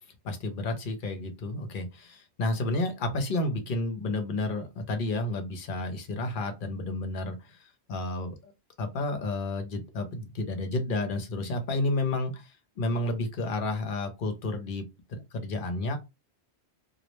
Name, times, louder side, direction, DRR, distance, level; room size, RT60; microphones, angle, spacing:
voice 1, 0.2-8.5 8.8-16.0, left 2 dB, 55° left, 0.7 m, -31 dB
2.3 x 2.0 x 2.9 m
omnidirectional pair, 1.1 m